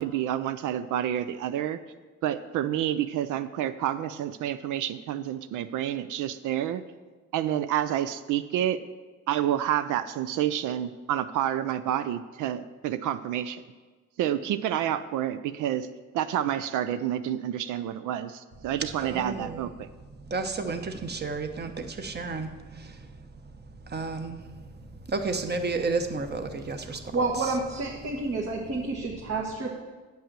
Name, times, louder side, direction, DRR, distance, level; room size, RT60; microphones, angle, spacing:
voice 1, 0.0-1.8 2.2-6.8 7.3-8.8 9.3-13.6 14.2-15.9 16.1-19.9, right 11 dB, 80° right, 12 dB, 0.5 m, -29 dB
voice 2, 19.0-19.6 20.3-23.1 23.9-24.4 25.1-27.0, right 3 dB, 35° right, 7 dB, 1.0 m, -31 dB
voice 3, 27.1-29.7, right 3 dB, 55° right, -2 dB, 1.4 m, -29 dB
8.8 x 5.5 x 7.5 m, 1.4 s
cardioid pair, 90°, 30 cm